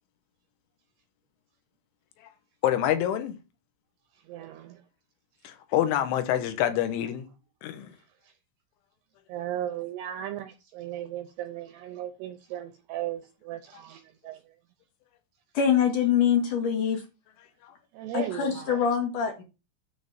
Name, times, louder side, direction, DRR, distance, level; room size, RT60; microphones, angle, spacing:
voice 1, 2.6-3.3 5.4-7.3 7.6-7.9, left 11 dB, 80° left, 3.6 m, -26 dB
voice 2, 4.2-4.8 8.2-8.3 9.3-14.5 17.9-18.8, right 12 dB, 80° right, 2.4 m, -36 dB
voice 3, 15.5-17.0 18.1-19.4, left 8 dB, 55° left, 2.5 m, -24 dB
10.0 x 4.4 x 7.4 m
omnidirectional pair, 5.5 m